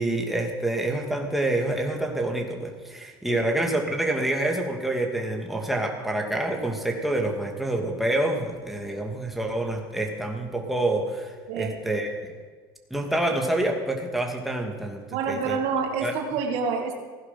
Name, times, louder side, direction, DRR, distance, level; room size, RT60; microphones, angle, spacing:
voice 1, 0.0-12.3 12.9-15.6 16.0-16.1, right 1 dB, ahead, 1 dB, 2.4 m, -27 dB
voice 2, 15.1-16.9, right 5 dB, 65° right, 3 dB, 2.2 m, -27 dB
16.0 x 10.5 x 5.9 m, 1.5 s
hypercardioid pair, 80°, 11 cm